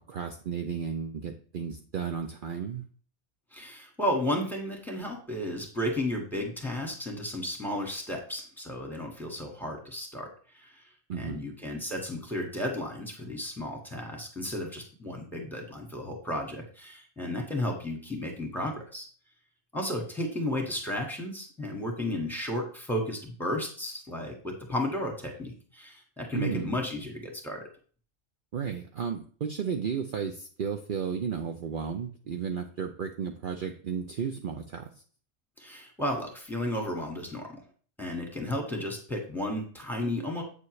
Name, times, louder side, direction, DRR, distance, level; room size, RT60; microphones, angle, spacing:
voice 1, 0.0-2.8 11.1-11.4 26.3-26.7 28.5-34.9, right 7 dB, 55° right, 4 dB, 0.8 m, -33 dB
voice 2, 3.5-10.3 10.5-10.7 11.2-19.1 19.7-27.6 35.6-37.5 38.0-40.4, left 1 dB, ahead, 1 dB, 1.8 m, -33 dB
8.2 x 7.1 x 3.2 m, 0.43 s
omnidirectional pair, 1.2 m